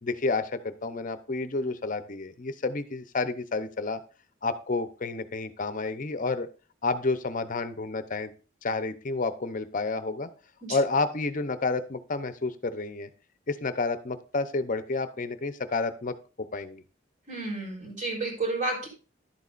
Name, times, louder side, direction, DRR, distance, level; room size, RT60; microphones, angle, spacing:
voice 1, 0.0-4.0 4.4-6.5 6.8-8.3 8.6-10.3 10.7-13.1 13.5-16.8, left 3 dB, 45° left, 11 dB, 0.7 m, -30 dB
voice 2, 17.3-18.9, right 2 dB, 45° right, -3 dB, 3.9 m, -31 dB
11.5 x 8.2 x 2.5 m, 0.36 s
head